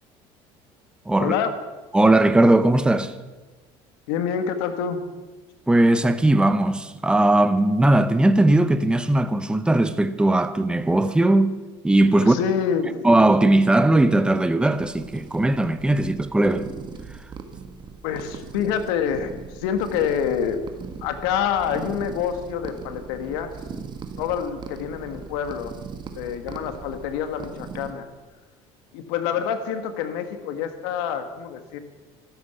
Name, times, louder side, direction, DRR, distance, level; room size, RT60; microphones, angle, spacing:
voice 1, 1.2-1.5 4.1-5.0 12.2-13.1 18.0-20.6 21.0-23.5 24.2-25.8 26.1-28.1 28.9-31.8, left 8 dB, 90° left, 1.6 m, -27 dB
voice 2, 1.9-3.1 5.7-11.5 11.8-12.4 13.0-16.7, right 1 dB, 5° right, 0.8 m, -18 dB
sound 1, 14.6-27.9, right 5 dB, 35° right, 1.7 m, -39 dB
13.0 x 12.5 x 7.0 m
cardioid pair, 110°, 13 cm